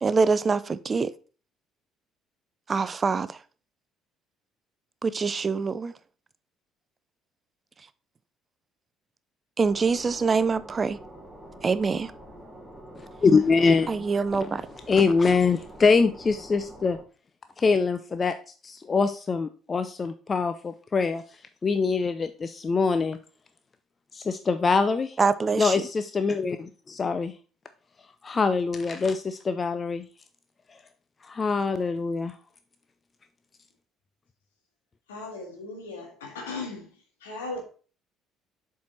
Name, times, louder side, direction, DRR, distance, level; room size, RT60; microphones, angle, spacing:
voice 1, 0.0-1.1 2.7-3.4 5.0-5.9 9.6-11.0 11.6-12.1 13.9-14.6 25.2-25.8, right 4 dB, 30° right, 0.4 m, -24 dB
sound 1, 9.6-17.0, right 1 dB, ahead, 3.6 m, -46 dB
voice 2, 13.2-13.9 14.4-14.5 14.9-17.0 17.6-18.3 18.6-21.2 21.6-23.2 24.1-25.2 25.6-27.3 28.2-30.0 31.2-32.3, left 4 dB, 30° left, 0.5 m, -24 dB
voice 3, 35.1-36.9 37.2-37.6, left 3 dB, 70° left, 1.8 m, -37 dB
7.2 x 4.7 x 4.1 m
figure-of-eight pair, 50°, 0 cm